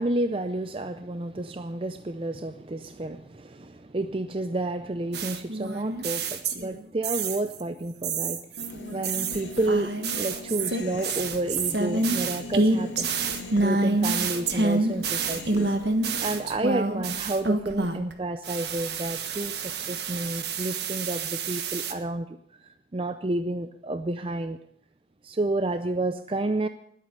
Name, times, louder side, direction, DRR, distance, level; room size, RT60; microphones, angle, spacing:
voice 1, 0.0-8.4 8.9-13.1 13.6-15.7 16.2-24.6 25.2-26.7, right 2 dB, 30° right, 10 dB, 0.5 m, -30 dB
sound 1, 5.1-6.7 7.0-7.6 8.0-18.1 18.4-21.9, right 3 dB, 65° right, 1.4 m, -28 dB
Human voice, 8.6-16.6, left 2 dB, 85° left, 2.5 m, -41 dB
20.0 x 8.5 x 6.8 m, 0.73 s
head